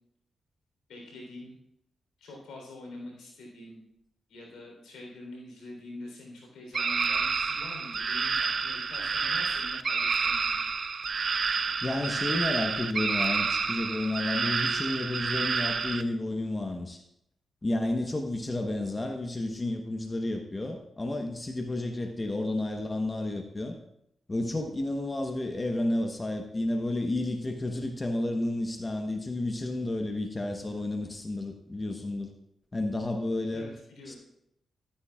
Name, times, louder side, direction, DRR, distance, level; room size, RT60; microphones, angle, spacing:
voice 1, 0.9-1.6 2.2-3.8 4.3-10.5 33.5-34.2, left 2 dB, 90° left, 0 dB, 3.7 m, -45 dB
sound 1, 6.7-16.0, right 5 dB, 55° right, 0.5 m, -29 dB
voice 2, 11.8-17.0 17.6-23.8 24.3-32.3 32.7-33.7 34.1-34.2, left 2 dB, 30° left, 3 dB, 1.1 m, -31 dB
13.0 x 10.5 x 2.4 m, 0.78 s
cardioid pair, 55°, 0 cm